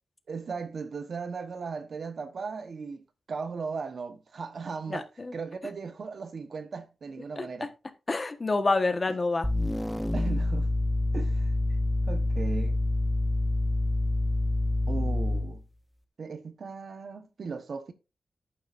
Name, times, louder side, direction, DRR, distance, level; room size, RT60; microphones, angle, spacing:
voice 1, 0.3-5.1 5.3-7.7 9.1-9.2 10.1-10.7 11.1-11.5 12.0-12.8 14.9-15.6 16.2-17.9, right 5 dB, 60° right, 1.1 m, -37 dB
voice 2, 4.9-5.3 7.3-7.7 8.1-9.5, left 3 dB, 30° left, 1.3 m, -28 dB
sound 1, 9.4-15.6, left 1 dB, 5° left, 0.8 m, -27 dB
11.0 x 8.9 x 2.6 m
wide cardioid pair, 100°, 0 cm